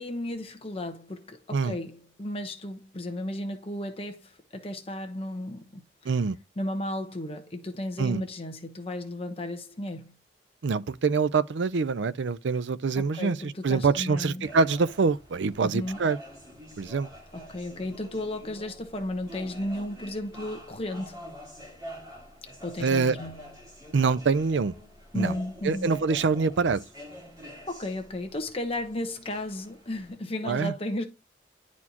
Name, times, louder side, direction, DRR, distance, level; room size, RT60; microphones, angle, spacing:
voice 1, 0.0-6.2 6.6-10.1 12.9-14.5 15.6-16.0 17.3-21.2 22.6-23.5 25.1-25.9 27.7-31.0, left 1 dB, 30° left, 0.9 m, -34 dB
voice 2, 6.1-6.4 8.0-8.2 10.6-16.2 16.8-17.1 22.8-23.1 23.9-24.7 25.1-25.4 25.6-26.8 30.5-30.7, right 4 dB, 80° right, 0.5 m, -25 dB
sound 1, 14.4-30.2, equal, 20° right, 2.3 m, -46 dB
11.0 x 4.2 x 2.9 m
head